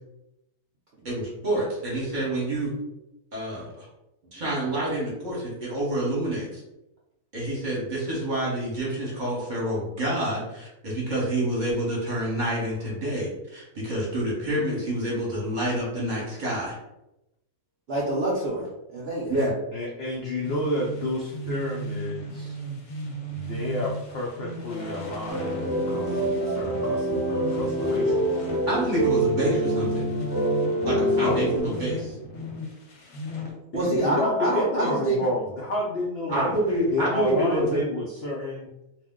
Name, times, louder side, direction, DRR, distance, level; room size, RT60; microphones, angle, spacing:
voice 1, 1.0-2.7 3.3-3.7 4.3-6.5 7.3-16.7 19.3-19.5 28.7-30.1 30.8-32.1 36.3-37.8, right 1 dB, 35° right, -6 dB, 1.0 m, -27 dB
voice 2, 17.9-18.7 18.9-19.3 33.7-35.2, right 2 dB, 65° right, -5 dB, 0.6 m, -26 dB
voice 3, 19.7-22.6 23.3-28.2 31.2-31.4 33.7-36.5 36.9-38.7, left 2 dB, 80° left, -3 dB, 0.5 m, -30 dB
sound 1, 20.4-33.5, right 1 dB, 60° left, 0.9 m, -35 dB
sound 2, 25.3-31.6, right 1 dB, 10° left, 0.6 m, -25 dB
2.5 x 2.1 x 3.5 m, 0.90 s
omnidirectional pair, 1.6 m